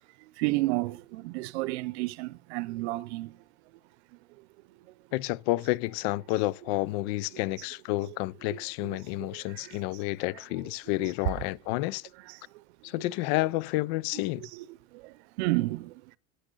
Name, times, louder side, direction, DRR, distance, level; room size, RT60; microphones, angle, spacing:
voice 1, 0.4-3.4 8.1-8.2 8.4-9.8 11.0-11.1 12.3-12.4 14.1-14.6 14.9-16.2, right 20 dB, 85° right, 0.6 m, -32 dB
voice 2, 5.1-12.1 12.8-14.5, left 18 dB, 75° left, 0.5 m, -30 dB
10.0 x 8.9 x 3.9 m
supercardioid pair, 115°, 32 cm